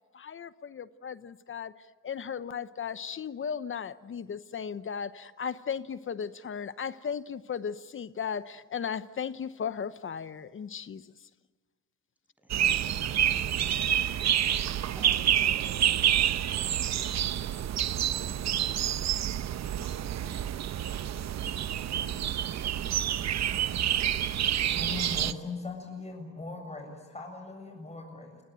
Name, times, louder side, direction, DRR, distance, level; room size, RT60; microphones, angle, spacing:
voice 1, 0.1-1.7 2.0-11.1, left 7 dB, 40° left, 14 dB, 0.9 m, -36 dB
sound 1, 12.5-25.3, right 10 dB, 60° right, 1.0 m, -28 dB
voice 2, 14.9-19.3, equal, 5° right, 4 dB, 8.0 m, -53 dB
voice 3, 24.8-28.4, left 3 dB, 20° left, 3 dB, 7.8 m, -40 dB
28.5 x 22.0 x 9.1 m, 1.4 s
cardioid pair, 90°, 30 cm